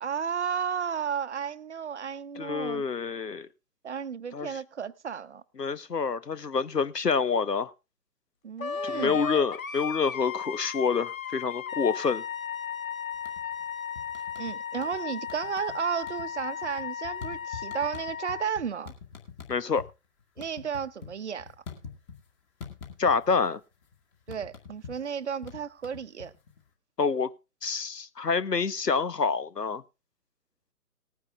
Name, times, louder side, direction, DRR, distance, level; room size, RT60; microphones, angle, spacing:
voice 1, 0.0-2.8 3.8-5.4 8.4-9.2 14.4-18.9 20.4-21.5 24.3-26.3, right 7 dB, 45° right, 0.8 m, -33 dB
voice 2, 2.4-3.5 4.3-4.5 5.6-7.7 8.8-12.2 19.5-19.8 23.0-23.6 27.0-27.3 27.6-29.8, left 5 dB, 85° left, 1.1 m, -27 dB
Wind instrument woodwind instrument, 8.6-18.5, left 7 dB, 60° left, 1.1 m, -36 dB
sound 1, 13.1-13.6 14.0-15.0 15.3-15.8 16.0-19.9 20.2-22.3 22.6-23.5 23.7-26.6, left 6 dB, 20° left, 1.9 m, -44 dB
19.5 x 9.8 x 2.3 m
figure-of-eight pair, 145°, 47 cm